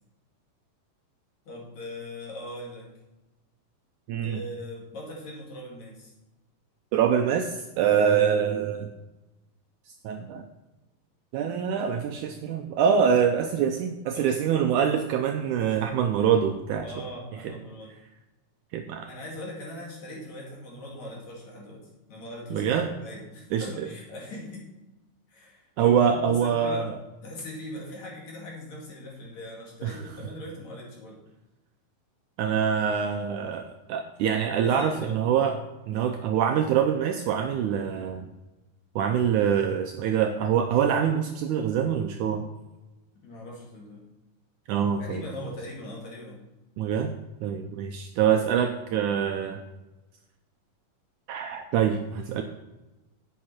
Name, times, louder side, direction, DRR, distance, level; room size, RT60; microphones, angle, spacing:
voice 1, 1.5-2.9 4.2-6.1 14.1-14.6 16.8-17.9 19.0-24.7 25.3-26.9 27.2-31.2 34.6-35.2 35.9-36.2 43.2-44.0 45.0-46.5, left 1 dB, 55° left, -3 dB, 3.6 m, -40 dB
voice 2, 4.1-4.4 6.9-8.9 10.0-10.4 11.3-16.9 17.4-17.5 18.7-19.1 22.5-22.9 23.5-23.9 25.8-26.9 29.8-30.0 32.4-35.6 35.9-38.3 39.0-42.5 44.7-45.2 46.8-47.1 47.4-49.6 51.3-52.4, right 8 dB, 80° right, 5 dB, 1.8 m, -25 dB
10.5 x 8.4 x 4.3 m, 1.1 s
omnidirectional pair, 4.1 m